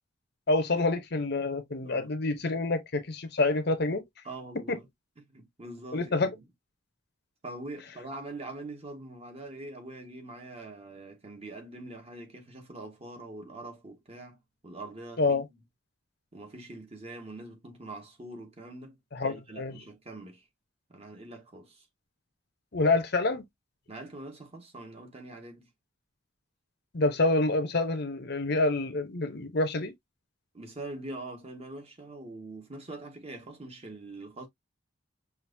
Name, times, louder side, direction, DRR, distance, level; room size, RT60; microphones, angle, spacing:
voice 1, 0.5-4.0 4.7-4.8 5.9-6.3 15.2-15.4 19.1-19.8 22.7-23.4 26.9-29.9, left 2 dB, 55° left, 0.8 m, -27 dB
voice 2, 4.2-4.8 5.3-6.4 7.4-15.4 16.3-20.4 20.9-21.9 23.9-25.7 30.5-34.5, right 2 dB, 30° right, 1.3 m, -43 dB
5.8 x 2.7 x 2.6 m
head